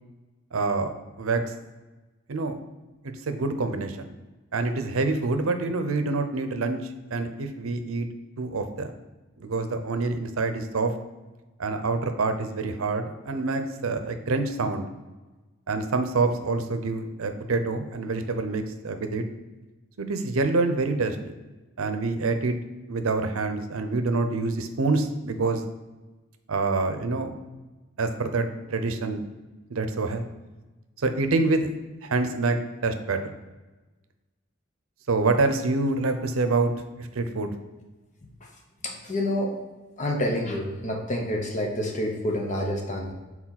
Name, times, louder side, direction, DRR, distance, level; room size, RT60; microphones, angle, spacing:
voice 1, 0.5-0.9 1.2-1.4 2.3-2.6 3.0-4.1 4.5-6.8 7.1-8.1 8.4-8.9 9.4-10.9 11.6-14.9 15.7-19.2 20.0-21.3 21.8-22.5 22.9-25.6 26.5-27.4 28.0-29.2 29.7-30.2 31.0-31.7 32.0-32.6 32.8-33.3 35.1-36.7 37.0-37.5, right 3 dB, 85° right, 8 dB, 0.6 m, -26 dB
voice 2, 38.8-39.6 40.0-43.1, left 1 dB, 35° left, 1 dB, 0.8 m, -28 dB
4.8 x 4.0 x 5.7 m, 1.2 s
head